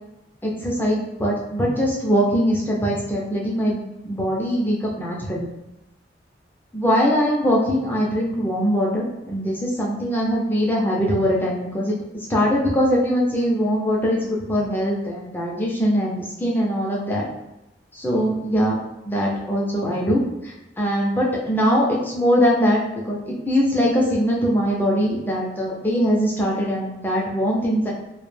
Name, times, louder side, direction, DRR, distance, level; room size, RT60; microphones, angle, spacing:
voice 1, 0.4-5.5 6.7-12.0 12.3-14.2 14.5-17.3 17.9-18.8 19.1-20.2 20.4-27.9, equal, 10° left, -4 dB, 0.4 m, -22 dB
2.2 x 2.1 x 3.1 m, 0.94 s
head